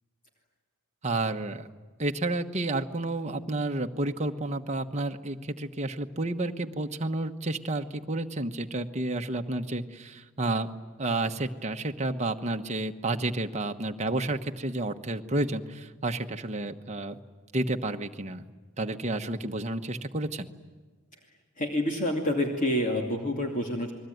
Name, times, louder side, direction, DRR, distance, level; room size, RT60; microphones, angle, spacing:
voice 1, 1.0-1.7 2.0-10.7 11.0-17.2 17.5-18.5 18.8-20.5, right 2 dB, 30° right, 5 dB, 1.2 m, -31 dB
voice 2, 21.6-23.9, left 1 dB, 35° left, 1 dB, 2.7 m, -28 dB
29.5 x 21.5 x 9.3 m, 1.4 s
head